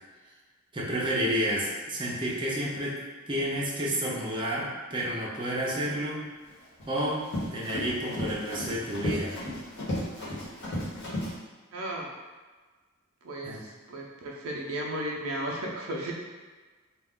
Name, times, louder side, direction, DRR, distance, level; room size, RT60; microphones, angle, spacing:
voice 1, 0.7-3.0 3.3-6.3 6.9-9.4 13.4-13.6, equal, 25° right, -5 dB, 0.5 m, -30 dB
Run, 6.5-11.3, left 1 dB, 55° left, 1.0 m, -34 dB
voice 2, 11.7-12.1 13.2-16.1, right 1 dB, 75° right, -2 dB, 0.5 m, -34 dB
2.4 x 2.3 x 3.6 m, 1.3 s
head